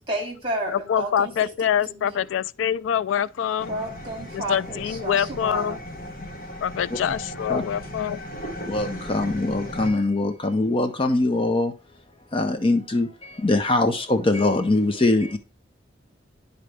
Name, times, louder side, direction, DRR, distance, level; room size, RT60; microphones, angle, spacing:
voice 1, 0.1-1.5 1.9-2.2 3.7-5.8, right 1 dB, 30° right, 2.4 m, -31 dB
voice 2, 0.7-3.7 4.3-5.8 6.6-8.5, left 9 dB, 90° left, 0.3 m, -25 dB
sound 1, 3.6-9.9, equal, 45° left, 1.4 m, -36 dB
voice 3, 8.7-11.7 12.3-15.4, left 2 dB, 30° left, 0.6 m, -22 dB
11.0 x 4.0 x 3.4 m
head